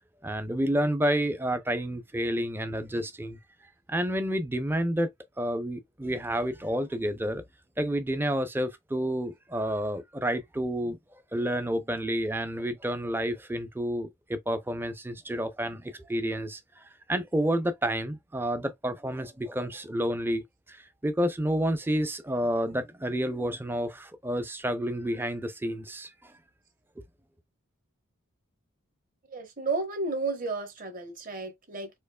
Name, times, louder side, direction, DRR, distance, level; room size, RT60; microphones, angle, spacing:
voice 1, 0.2-3.4 3.9-5.1 5.4-7.4 7.8-11.0 11.3-20.4 20.7-26.3, equal, 10° right, 0.4 m, -30 dB
voice 2, 29.3-31.9, right 3 dB, 40° right, 1.0 m, -32 dB
4.4 x 2.8 x 2.3 m
head